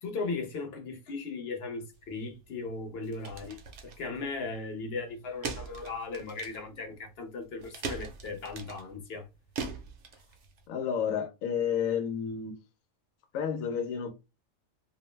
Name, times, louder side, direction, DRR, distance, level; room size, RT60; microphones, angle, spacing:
voice 1, 0.0-9.3, left 4 dB, 55° left, 0.8 m, -37 dB
sound 1, 1.9-10.7, right 5 dB, 65° right, 0.8 m, -42 dB
voice 2, 10.7-12.5 13.3-14.1, left 7 dB, 85° left, 1.0 m, -30 dB
2.5 x 2.0 x 3.1 m
omnidirectional pair, 1.4 m